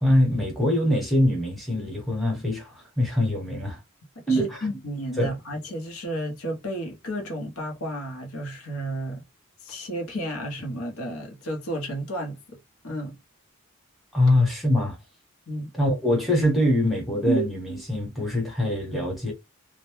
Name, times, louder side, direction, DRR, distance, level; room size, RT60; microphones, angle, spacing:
voice 1, 0.0-3.8 4.3-4.5 5.2-5.3 14.1-15.0 15.7-19.3, left 1 dB, ahead, 0.9 m, -23 dB
voice 2, 4.3-9.2 9.6-12.6 12.8-13.2 15.5-15.7, equal, 80° left, 0.7 m, -32 dB
2.1 x 2.0 x 2.9 m
head